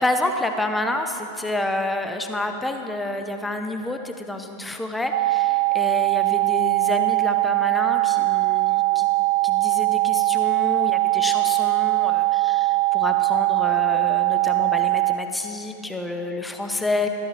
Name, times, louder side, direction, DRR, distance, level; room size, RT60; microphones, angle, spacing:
voice 1, 0.0-9.1 9.4-17.1, left 2 dB, 5° left, 5 dB, 0.7 m, -28 dB
sound 1, 5.1-15.2, right 22 dB, 70° right, 0.4 m, -21 dB
12.5 x 12.0 x 3.0 m, 2.8 s
figure-of-eight pair, 90°, 0 cm